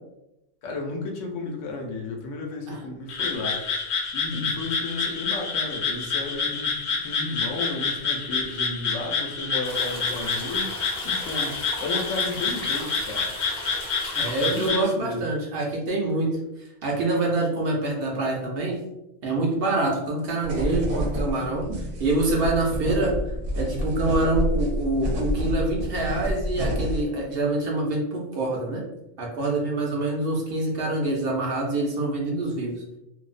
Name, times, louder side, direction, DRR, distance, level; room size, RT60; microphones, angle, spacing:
voice 1, 0.6-3.6 4.1-13.3 14.4-15.3, left 2 dB, 80° left, 1 dB, 0.9 m, -33 dB
Frog, 3.1-14.8, left 5 dB, 60° left, 0.4 m, -28 dB
sound 1, 9.6-14.7, equal, 5° right, 0.4 m, -38 dB
voice 2, 14.1-16.3 16.6-18.8 19.2-23.1 23.5-28.8 29.2-33.0, right 2 dB, 60° right, -2 dB, 0.7 m, -26 dB
sound 2, 20.4-27.1, equal, 85° right, 0.9 m, -28 dB
2.5 x 2.0 x 2.4 m, 0.89 s
omnidirectional pair, 1.2 m